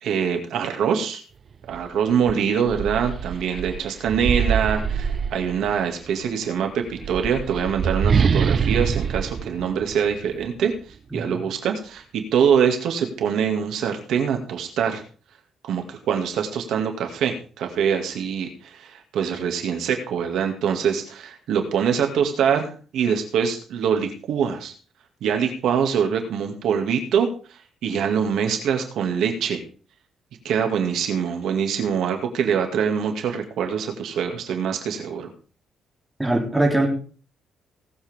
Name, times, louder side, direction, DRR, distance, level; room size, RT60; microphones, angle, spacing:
voice 1, 0.0-1.2 1.7-10.7 11.1-15.0 15.6-24.7 25.2-27.3 27.8-29.6 30.4-35.3, right 7 dB, 75° right, 4 dB, 2.2 m, -24 dB
sound 1, 1.7-1.9 2.3-5.9 6.8-10.5, right 6 dB, 40° right, 0.7 m, -24 dB
voice 2, 36.2-36.9, right 1 dB, 10° right, 0 dB, 3.1 m, -21 dB
18.5 x 7.8 x 3.6 m, 0.39 s
cardioid pair, 130°, 0 cm